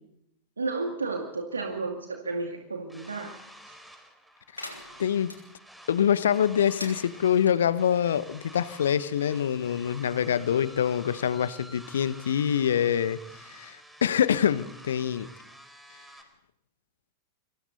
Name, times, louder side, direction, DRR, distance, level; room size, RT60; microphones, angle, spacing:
voice 1, 0.6-3.4 3.7-3.8, right 3 dB, 75° right, 3 dB, 2.2 m, -32 dB
sound 1, 2.9-16.2, equal, ahead, 4.3 m, -50 dB
sound 2, 4.5-5.4 6.6-7.6, left 2 dB, 85° left, 3.3 m, -42 dB
voice 2, 5.0-5.3 5.9-13.2 13.6-13.8 14.0-15.3, left 9 dB, 65° left, 16 dB, 1.1 m, -25 dB
29.0 x 23.5 x 4.1 m, 0.77 s
figure-of-eight pair, 90°, 0 cm